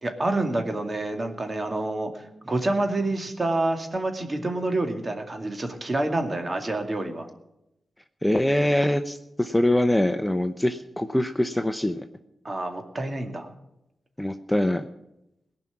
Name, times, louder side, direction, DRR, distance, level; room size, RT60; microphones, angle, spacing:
voice 1, 0.0-7.3 12.4-13.5, right 2 dB, 35° right, 5 dB, 2.3 m, -28 dB
voice 2, 8.2-12.0 14.2-14.8, left 1 dB, 10° left, 8 dB, 0.8 m, -23 dB
18.0 x 6.0 x 9.5 m, 0.88 s
cardioid pair, 55°, 0 cm